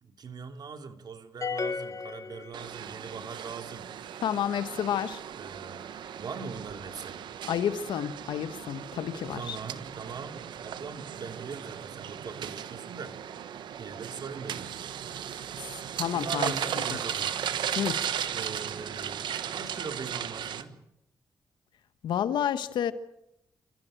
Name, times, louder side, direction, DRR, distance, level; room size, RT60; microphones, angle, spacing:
voice 1, 0.0-3.9 5.3-5.9 6.2-7.2 9.3-13.2 13.8-14.8 16.1-17.4 18.3-20.8, right 5 dB, 65° right, 2.7 m, -41 dB
sound 1, 1.4-3.1, left 4 dB, 45° left, 1.7 m, -34 dB
sound 2, 2.5-20.6, right 9 dB, 85° right, 1.2 m, -36 dB
voice 2, 4.2-5.2 7.5-9.6 16.0-16.5 17.8-18.0 22.0-22.9, left 9 dB, 90° left, 1.2 m, -30 dB
28.0 x 15.0 x 9.0 m
cardioid pair, 60°, 8 cm